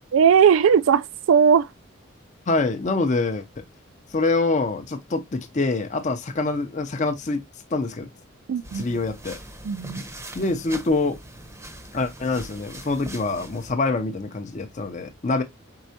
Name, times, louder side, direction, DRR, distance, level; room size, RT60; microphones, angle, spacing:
voice 1, 0.1-1.7 8.5-8.9 9.6-10.0, right 7 dB, 65° right, 0.3 m, -18 dB
voice 2, 2.5-3.6 4.1-7.4 7.7-8.1 8.7-9.4 10.3-11.2 11.9-15.4, left 3 dB, 35° left, 0.5 m, -25 dB
sound 1, 8.6-13.7, right 1 dB, 10° right, 0.7 m, -41 dB
4.6 x 4.1 x 2.7 m
head